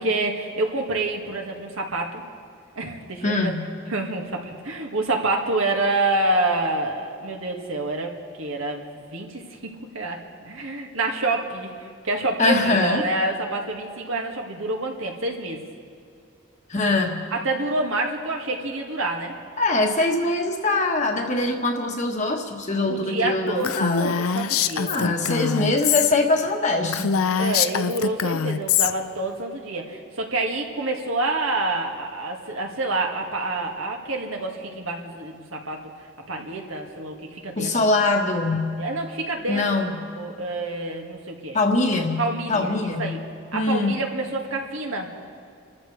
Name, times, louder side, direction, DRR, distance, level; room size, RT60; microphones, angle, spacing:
voice 1, 0.0-2.2 2.8-3.5 3.9-8.1 8.4-15.6 17.3-19.4 20.1-20.2 22.9-25.2 27.4-35.9 36.3-37.7 38.8-39.8 40.2-41.6 42.2-43.2 43.5-45.1, right 2 dB, 75° right, 1 dB, 2.0 m, -27 dB
voice 2, 3.2-3.6 12.4-13.0 16.7-17.2 19.6-24.1 24.9-27.1 37.6-38.8 39.5-39.9 41.5-43.2 43.5-44.0, left 2 dB, 35° left, 2 dB, 1.4 m, -23 dB
Female speech woman speaking, 23.6-26.1 26.5-26.6 26.9-28.9, left 7 dB, 85° left, 0.5 m, -23 dB
29.5 x 14.0 x 3.3 m, 2.5 s
head